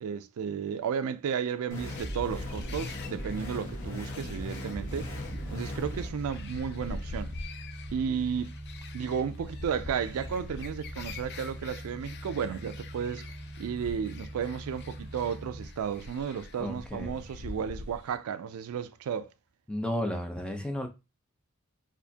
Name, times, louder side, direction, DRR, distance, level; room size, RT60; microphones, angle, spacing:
voice 1, 0.0-5.1 5.5-7.3 7.9-8.5 8.9-13.3 13.6-19.3, right 7 dB, 75° right, 0.3 m, -33 dB
sound 1, 1.7-6.1, left 1 dB, 65° left, 1.3 m, -37 dB
sound 2, 1.9-18.2, left 3 dB, 50° left, 0.4 m, -44 dB
sound 3, 4.8-15.7, right 1 dB, 25° right, 2.1 m, -43 dB
voice 2, 16.6-17.2 19.7-20.9, left 1 dB, 5° left, 0.6 m, -33 dB
4.2 x 2.5 x 2.7 m
head